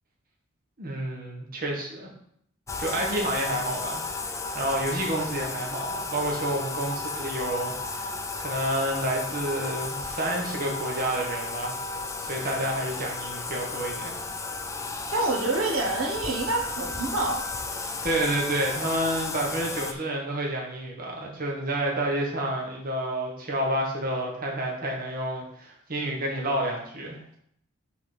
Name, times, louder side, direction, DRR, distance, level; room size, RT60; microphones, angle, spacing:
voice 1, 0.8-2.1 2.8-8.1 8.4-11.8 12.2-14.1 18.0-27.2, right 1 dB, 45° right, -1 dB, 1.4 m, -29 dB
Bathtub (filling or washing), 2.7-19.9, left 3 dB, 15° left, 0.5 m, -34 dB
voice 2, 15.1-17.4, right 2 dB, 75° right, -1 dB, 1.4 m, -27 dB
5.9 x 3.8 x 6.1 m, 0.68 s
head